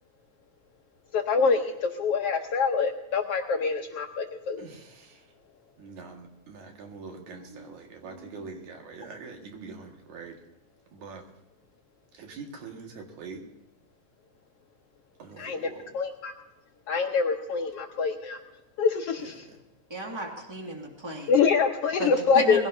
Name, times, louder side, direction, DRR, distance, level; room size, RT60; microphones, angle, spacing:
voice 1, 1.1-4.7 15.4-15.7 15.9-16.3 16.9-18.4 18.8-19.4 21.3-22.7, left 5 dB, 65° left, 3 dB, 1.6 m, -25 dB
voice 2, 4.6-5.3 5.8-10.4 10.9-11.3 12.1-13.4 15.2-15.9 19.2-19.6, right 4 dB, 75° right, 2 dB, 3.2 m, -44 dB
voice 3, 19.9-21.3 22.0-22.7, right 2 dB, 10° right, 1 dB, 1.8 m, -34 dB
21.0 x 16.5 x 2.7 m, 0.95 s
omnidirectional pair, 3.4 m